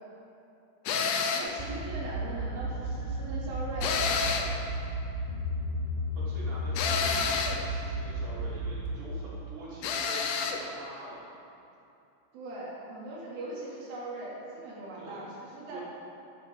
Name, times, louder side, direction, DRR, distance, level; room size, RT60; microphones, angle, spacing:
sound 1, 0.9-1.6 3.8-4.6 6.8-7.6 9.8-10.6, left 5 dB, 70° left, 2.9 m, -29 dB
voice 1, 1.3-4.0 12.3-15.8, right 2 dB, 85° right, -7 dB, 5.9 m, -40 dB
sound 2, 1.6-8.9, equal, 10° left, 4.7 m, -34 dB
voice 2, 6.3-11.2 14.9-15.3 15.7-15.8, right 1 dB, 40° right, -10 dB, 6.3 m, -45 dB
27.0 x 12.0 x 4.2 m, 2.8 s
omnidirectional pair, 5.5 m